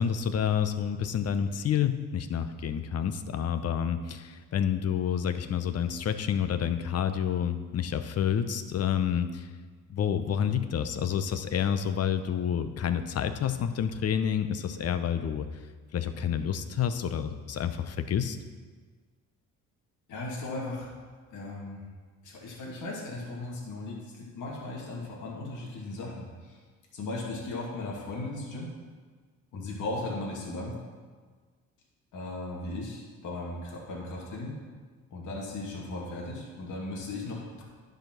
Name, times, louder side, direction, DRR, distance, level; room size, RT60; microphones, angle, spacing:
voice 1, 0.0-9.5 9.9-15.5 15.9-18.4, left 8 dB, 55° left, 10 dB, 0.8 m, -29 dB
voice 2, 20.1-20.9 21.3-21.8 22.2-26.6 26.9-28.7 29.5-30.8 32.1-34.5 35.1-37.6, left 2 dB, 80° left, -3 dB, 2.4 m, -37 dB
10.5 x 5.1 x 6.0 m, 1.5 s
cardioid pair, 90°, 30 cm